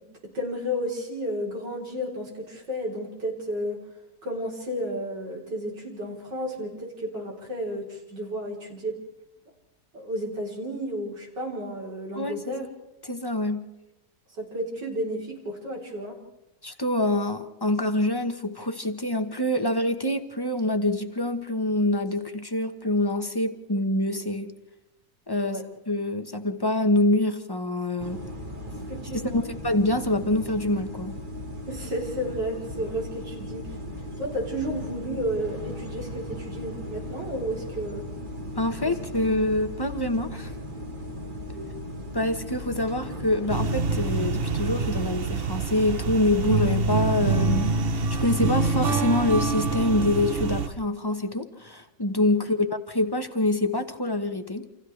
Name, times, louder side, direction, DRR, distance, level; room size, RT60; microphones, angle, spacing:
voice 1, 0.3-3.8 4.2-9.0 9.9-12.6 14.3-16.2 25.4-25.6 28.9-29.4 31.7-33.6 34.2-38.0 41.5-41.7, equal, 70° right, 4.5 m, -32 dB
voice 2, 12.1-12.5 13.0-13.7 16.6-24.5 25.3-25.6 25.9-28.2 29.1-31.2 38.6-40.5 42.1-54.7, left 1 dB, 20° left, 0.8 m, -26 dB
sound 1, 28.0-45.2, equal, 25° right, 2.1 m, -37 dB
sound 2, 43.5-50.7, right 3 dB, 45° right, 0.8 m, -26 dB
29.0 x 27.0 x 3.3 m
omnidirectional pair, 2.0 m